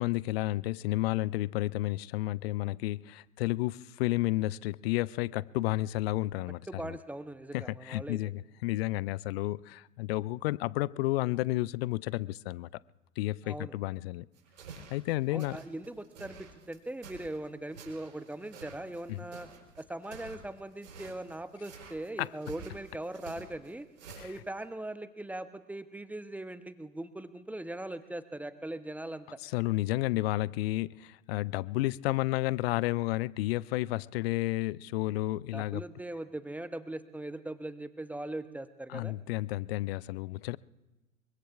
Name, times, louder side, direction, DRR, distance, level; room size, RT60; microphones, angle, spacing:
voice 1, 0.0-7.0 7.5-12.7 13.2-14.3 14.9-15.6 19.1-19.2 22.2-22.3 24.2-24.3 29.4-35.8 38.9-40.6, left 18 dB, 50° left, 0.5 m, -31 dB
voice 2, 6.7-8.2 13.4-13.7 15.3-19.5 19.8-23.9 24.2-29.4 35.5-39.2, right 1 dB, 5° right, 0.9 m, -40 dB
sound 1, 14.3-24.7, right 4 dB, 70° right, 4.5 m, -50 dB
24.5 x 24.0 x 2.5 m
figure-of-eight pair, 85°, 41 cm